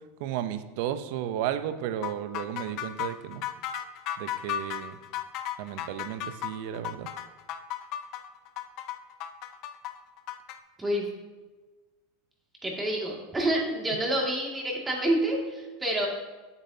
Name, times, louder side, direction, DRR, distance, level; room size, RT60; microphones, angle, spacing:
voice 1, 0.2-3.4 4.2-5.0 5.6-7.1, right 11 dB, 65° right, 11 dB, 0.6 m, -33 dB
sound 1, 2.0-10.6, left 11 dB, 55° left, 0.6 m, -35 dB
voice 2, 12.6-16.1, right 1 dB, 15° right, -2 dB, 2.1 m, -28 dB
9.3 x 8.2 x 2.8 m, 1.3 s
hypercardioid pair, 100°, 0 cm